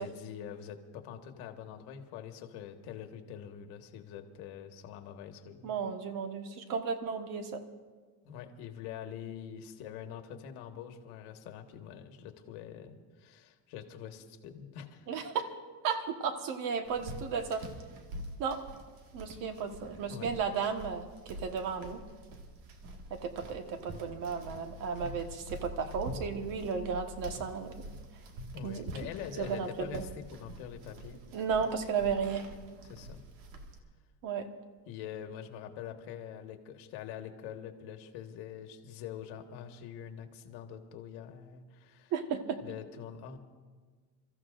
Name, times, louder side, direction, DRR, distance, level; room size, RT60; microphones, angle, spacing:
voice 1, 0.0-5.7 8.2-15.1 20.1-20.3 28.5-31.2 32.8-33.2 34.9-42.1 42.6-43.4, left 9 dB, 80° left, 5 dB, 1.5 m, -44 dB
voice 2, 5.6-7.6 15.1-15.5 15.8-17.6 18.4-18.6 19.1-22.0 23.1-27.8 28.6-28.9 29.4-30.0 31.3-32.5 34.2-34.5 42.1-42.6, right 6 dB, 55° right, 6 dB, 1.4 m, -34 dB
sound 1, 16.8-33.8, right 1 dB, 80° right, 1.9 m, -46 dB
29.0 x 14.0 x 2.5 m, 1.5 s
cardioid pair, 155°, 39 cm